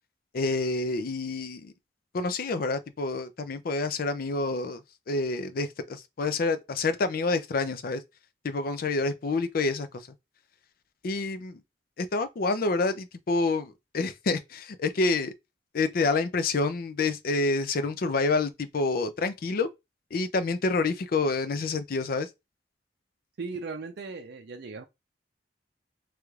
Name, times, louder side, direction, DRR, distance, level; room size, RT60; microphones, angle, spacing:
voice 1, 0.3-1.7 2.1-4.8 5.1-8.0 8.4-10.1 11.0-11.6 12.0-15.3 15.7-19.7 20.1-22.3, left 3 dB, 55° left, 0.4 m, -28 dB
voice 2, 23.4-24.8, right 4 dB, 65° right, 0.5 m, -37 dB
3.1 x 2.4 x 3.1 m
head